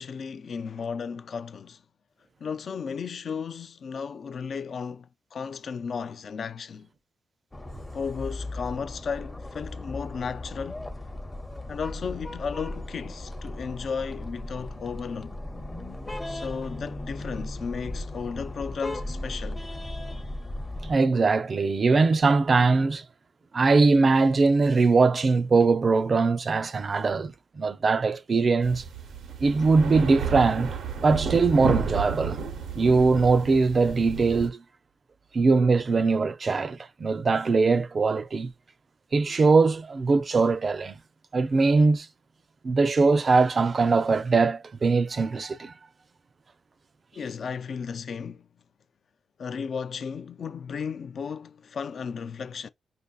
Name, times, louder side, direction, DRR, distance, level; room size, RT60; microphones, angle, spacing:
voice 1, 0.0-1.8 2.4-6.9 7.9-10.8 11.7-15.3 16.3-19.7 47.1-48.5 49.4-52.7, left 6 dB, 60° left, 0.3 m, -34 dB
sound 1, 7.5-21.0, left 1 dB, 15° left, 0.6 m, -37 dB
voice 2, 20.9-23.0 23.5-28.8 29.4-30.8 31.0-32.4 32.8-34.6 35.3-38.5 39.1-41.0 41.3-42.1 42.6-45.7, right 4 dB, 45° right, 0.4 m, -21 dB
sound 2, 28.6-34.5, right 5 dB, 85° right, 0.7 m, -32 dB
5.2 x 2.5 x 2.3 m
cardioid pair, 90°, 0 cm